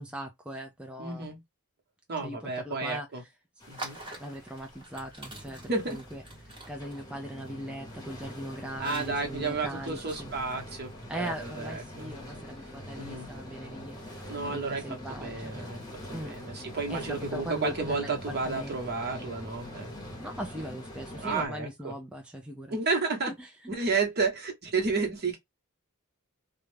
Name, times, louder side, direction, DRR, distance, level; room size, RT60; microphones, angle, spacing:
voice 1, 0.0-1.3 2.2-3.1 4.2-6.2 6.7-10.3 11.1-15.7 16.1-16.4 16.9-18.8 20.2-22.8 23.4-23.5 23.8-23.9, equal, 5° right, 0.3 m, -40 dB
voice 2, 1.0-1.4 2.1-3.2 3.7-4.0 5.6-6.0 8.8-12.3 12.9-13.3 14.3-15.8 16.2-19.9 21.2-21.9 22.7-23.3 23.7-25.4, right 4 dB, 50° right, 1.0 m, -32 dB
sound 1, 3.6-21.5, left 1 dB, 20° left, 0.8 m, -44 dB
sound 2, 3.6-11.6, right 2 dB, 25° right, 0.9 m, -47 dB
2.3 x 2.1 x 3.0 m
head